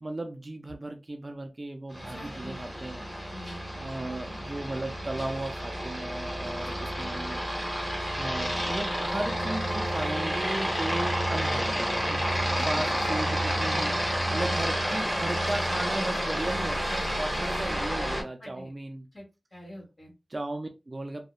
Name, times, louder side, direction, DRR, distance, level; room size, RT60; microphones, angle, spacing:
voice 1, 0.0-3.0 3.7-7.4 8.2-12.2 12.7-13.9 14.3-19.1 20.3-21.3, right 2 dB, 35° right, 0.3 m, -36 dB
Aircraft, 1.9-18.2, equal, 5° left, 1.0 m, -30 dB
voice 2, 2.0-2.7 3.3-3.7 6.6-7.5 12.3-12.7 14.3-14.7 18.1-18.7 19.1-19.2 19.5-20.1, equal, 40° left, 1.3 m, -46 dB
2.7 x 2.0 x 2.3 m
wide cardioid pair, 75°, 0 cm